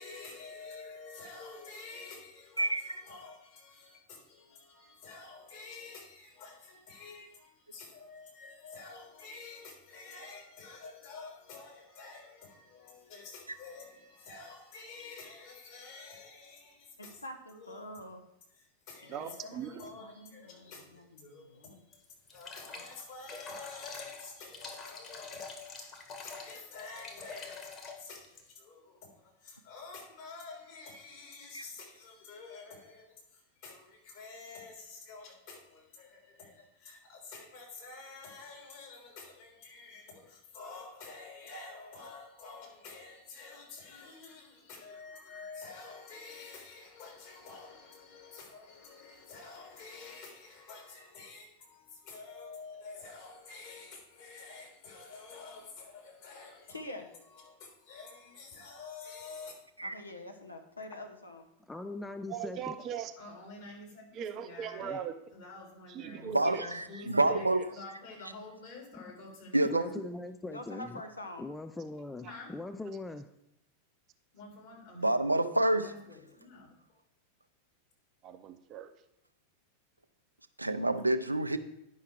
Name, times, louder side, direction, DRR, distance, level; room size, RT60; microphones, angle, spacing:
voice 1, 0.0-17.2 17.5-17.9 18.5-22.0 22.3-59.6 63.2-65.0 65.3-70.0 72.2-72.6 74.3-75.2 75.8-77.0, left 4 dB, 50° left, 3.6 m, -49 dB
voice 2, 2.6-2.9 31.5-31.6 59.8-59.9 66.2-67.6 69.5-69.8 75.0-75.9 80.6-81.6, right 1 dB, 85° right, 0.5 m, -28 dB
voice 3, 17.0-18.2 19.0-21.8 56.7-57.1 59.8-61.5 70.4-71.4, left 1 dB, 80° left, 0.9 m, -46 dB
voice 4, 19.1-19.9 62.3-63.1 64.1-65.1 65.9-66.7 67.0-67.4 78.2-78.9, right 9 dB, 35° right, 0.6 m, -40 dB
sound 1, 21.9-28.5, left 4 dB, 30° left, 1.8 m, -45 dB
voice 5, 61.6-62.8 64.8-65.1 69.6-71.0 71.4-73.3, left 2 dB, 10° left, 0.4 m, -41 dB
10.0 x 5.7 x 4.7 m
figure-of-eight pair, 90°, 0 cm